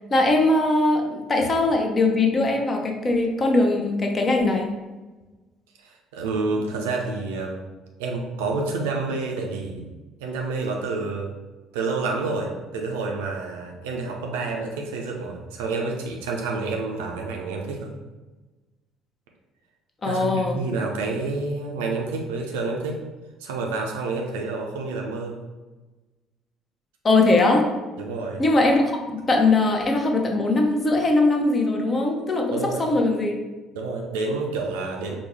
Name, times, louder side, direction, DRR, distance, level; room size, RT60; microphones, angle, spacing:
voice 1, 0.1-4.7 20.0-20.6 27.0-27.7 28.4-28.9 29.3-33.3, left 2 dB, 30° left, 2 dB, 0.7 m, -20 dB
voice 2, 5.8-7.6 8.0-9.9 10.2-11.3 11.7-17.9 20.1-23.0 23.4-25.4 28.0-28.4 32.5-32.8 33.7-35.2, right 3 dB, 70° right, 0 dB, 0.4 m, -28 dB
4.4 x 2.2 x 3.4 m, 1.2 s
figure-of-eight pair, 55°, 0 cm